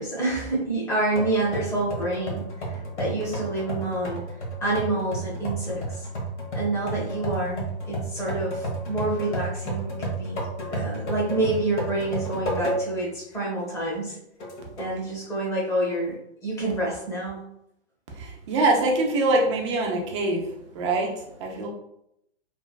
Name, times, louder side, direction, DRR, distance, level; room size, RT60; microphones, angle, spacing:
voice 1, 0.0-4.2 4.6-6.1 6.5-9.9 10.2-10.4 10.7-14.2 14.8-17.4, right 2 dB, 10° left, -5 dB, 0.8 m, -28 dB
sound 1, 1.2-13.1 13.5-13.6 14.4-15.0, right 1 dB, 90° left, 1.3 m, -32 dB
voice 2, 18.1-20.4 20.7-21.7, right 2 dB, 25° right, 0 dB, 0.5 m, -24 dB
3.3 x 2.1 x 2.3 m, 0.78 s
hypercardioid pair, 145°, 34 cm